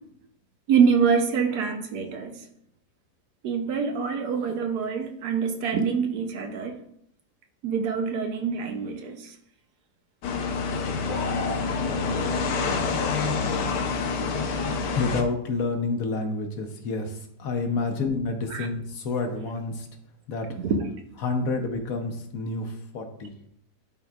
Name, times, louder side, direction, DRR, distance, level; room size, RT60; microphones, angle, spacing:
voice 1, 0.7-2.3 3.4-6.8 7.6-9.2 18.5-18.7 20.6-20.8, right 6 dB, 70° right, 1.2 m, -25 dB
sound 1, 10.2-15.2, left 4 dB, 80° left, 1.4 m, -27 dB
sound 2, 11.1-11.6, left 3 dB, 40° left, 0.7 m, -32 dB
voice 2, 14.9-19.9 20.3-20.5 21.2-23.3, left 3 dB, 65° left, 1.1 m, -29 dB
11.5 x 3.8 x 2.3 m
omnidirectional pair, 1.8 m